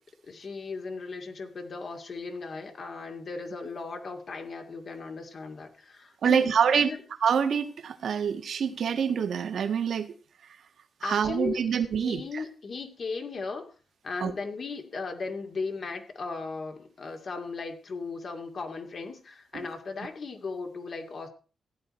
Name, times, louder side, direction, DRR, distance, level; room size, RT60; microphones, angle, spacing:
voice 1, 0.3-7.0 11.0-11.7 11.9-13.7 14.0-21.3, left 4 dB, 50° left, 4 dB, 2.4 m, -37 dB
voice 2, 6.2-6.9 7.2-10.1 10.4-10.6 11.0-12.4 14.2-14.3 19.5-19.7, right 7 dB, 70° right, 6 dB, 1.5 m, -26 dB
16.0 x 10.5 x 4.3 m, 0.36 s
wide cardioid pair, 125°, 0 cm